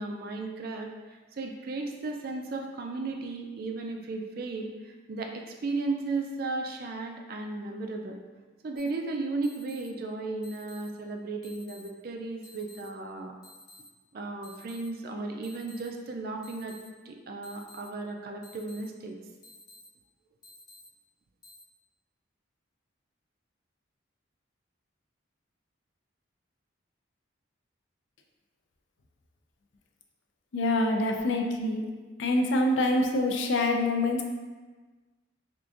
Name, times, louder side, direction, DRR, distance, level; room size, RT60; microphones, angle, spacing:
voice 1, 0.0-8.2 8.6-13.4 14.1-16.8 17.1-19.2, right 3 dB, 50° right, 3 dB, 0.3 m, -35 dB
sound 1, 8.8-8.9 9.4-9.8 10.4-10.8 11.4-11.8 12.4-12.8 13.4-13.8 14.4-14.8 15.4-15.8 16.4-16.8 17.4-17.8 18.4-18.8 19.4-19.8 20.4-20.8 21.4-21.6, left 2 dB, 20° left, 0.6 m, -52 dB
voice 2, 30.5-31.8 32.2-34.2, left 2 dB, 65° left, 2 dB, 0.4 m, -25 dB
4.5 x 2.5 x 2.4 m, 1.3 s
head